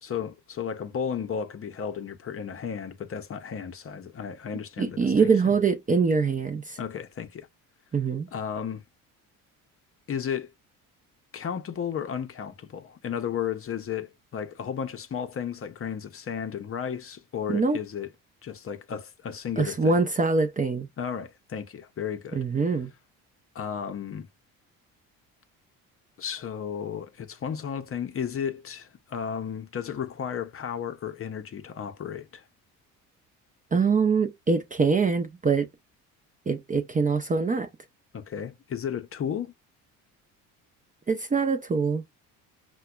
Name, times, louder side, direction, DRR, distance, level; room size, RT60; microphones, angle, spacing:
voice 1, 0.0-5.5 6.8-7.5 8.3-8.8 10.1-10.5 11.3-18.1 18.4-20.0 21.0-22.4 23.5-24.3 26.2-32.4 38.1-39.5, left 8 dB, 35° left, 0.6 m, -34 dB
voice 2, 4.8-6.8 7.9-8.3 17.5-17.8 19.6-20.9 22.3-22.9 33.7-35.7 36.5-37.7 41.1-42.0, right 4 dB, 20° right, 0.5 m, -24 dB
5.6 x 2.2 x 2.2 m
supercardioid pair, 70°, 40 cm